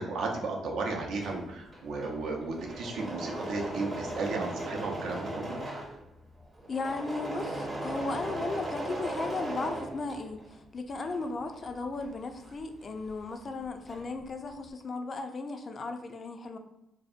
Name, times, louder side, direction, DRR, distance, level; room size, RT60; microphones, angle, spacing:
voice 1, 0.0-5.6, right 3 dB, 75° right, 0 dB, 0.5 m, -34 dB
Engine / Mechanisms, 1.0-10.6 10.9-13.3 13.5-14.2, right 1 dB, 25° right, 0.6 m, -38 dB
voice 2, 6.7-16.6, left 3 dB, 40° left, 6 dB, 0.3 m, -36 dB
2.6 x 2.0 x 2.4 m, 0.89 s
cardioid pair, 90°, 0 cm